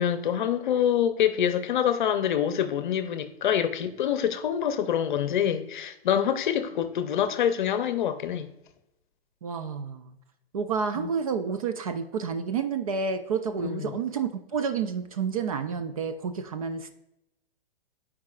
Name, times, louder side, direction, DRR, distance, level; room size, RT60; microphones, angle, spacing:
voice 1, 0.0-8.5 11.0-11.1 13.6-14.0, left 9 dB, 50° left, 0.7 m, -26 dB
voice 2, 9.4-10.2 10.5-16.9, right 6 dB, 35° right, 0.4 m, -30 dB
10.5 x 4.7 x 2.4 m
hypercardioid pair, 155°, 31 cm